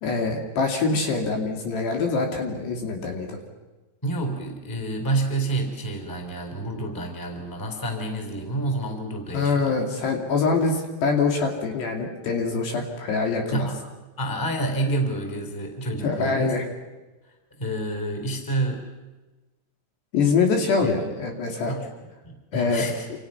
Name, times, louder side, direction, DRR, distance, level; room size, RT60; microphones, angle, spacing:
voice 1, 0.0-3.4 9.3-13.7 16.0-16.6 20.1-21.8 22.5-23.2, left 4 dB, 60° left, 1 dB, 4.4 m, -24 dB
voice 2, 4.0-9.7 13.5-13.8 14.2-16.6 17.6-18.8 20.8-20.9 21.7-23.0, right 2 dB, 5° left, 3 dB, 3.1 m, -29 dB
28.0 x 28.0 x 5.9 m, 1.2 s
omnidirectional pair, 6.0 m